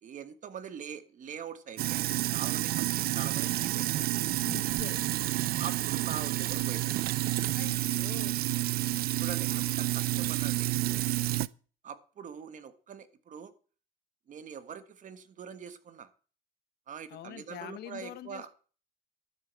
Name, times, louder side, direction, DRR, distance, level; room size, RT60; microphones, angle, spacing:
voice 1, 0.0-4.0 5.6-7.0 9.2-11.3 11.8-13.5 14.3-16.1 16.9-18.5, right 7 dB, 50° right, 11 dB, 1.6 m, -43 dB
Sink (filling or washing), 1.8-11.5, right 16 dB, 65° right, 0.5 m, -30 dB
voice 2, 4.5-5.1 7.5-8.4 17.1-18.5, left 12 dB, 75° left, 11 dB, 1.5 m, -44 dB
12.5 x 6.7 x 7.6 m, 0.39 s
cardioid pair, 110°, 17 cm